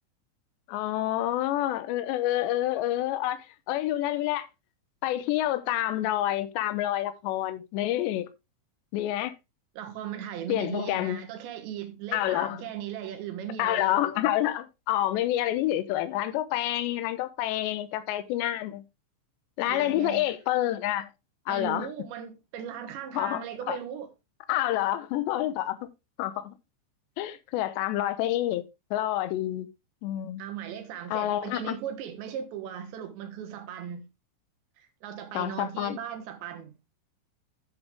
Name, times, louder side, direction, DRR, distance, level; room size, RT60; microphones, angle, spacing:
voice 1, 0.7-4.5 5.0-8.3 8.9-9.3 10.5-11.2 12.1-12.6 13.6-18.8 19.6-21.1 21.5-21.9 23.1-23.8 24.5-25.9 26.2-26.5 27.2-28.6 28.9-29.7 30.0-30.4 31.1-31.8 35.3-36.0, left 13 dB, 80° left, 2.8 m, -28 dB
voice 2, 9.8-14.0 19.7-20.3 21.5-24.1 30.4-34.1 34.8-36.7, right 9 dB, 70° right, 3.4 m, -38 dB
11.0 x 7.8 x 3.5 m
omnidirectional pair, 5.7 m